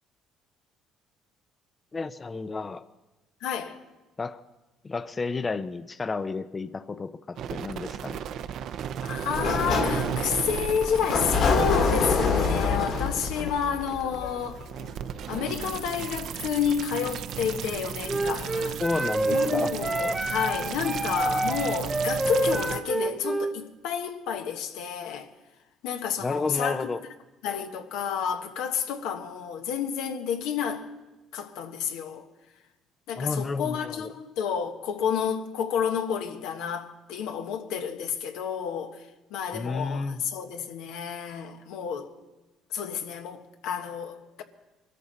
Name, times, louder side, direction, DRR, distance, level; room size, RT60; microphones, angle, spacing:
voice 1, 1.9-2.8 4.2-4.4 4.8-8.2 18.8-19.7 26.2-27.0 33.2-34.1 39.5-40.2, left 4 dB, 25° left, 0.5 m, -31 dB
voice 2, 3.4-3.8 9.0-14.6 15.3-18.8 19.3-25.3 25.8-26.9 27.4-30.9 31.3-32.3 33.1-42.1 42.7-44.4, left 7 dB, 85° left, 1.3 m, -30 dB
sound 1, 7.4-22.8, right 9 dB, 60° right, 0.6 m, -34 dB
Sliding door, 9.2-14.9, left 5 dB, 60° left, 2.6 m, -27 dB
Wind instrument woodwind instrument, 18.1-23.6, right 2 dB, 10° right, 0.7 m, -28 dB
22.5 x 13.5 x 4.2 m
cardioid pair, 115°, 0 cm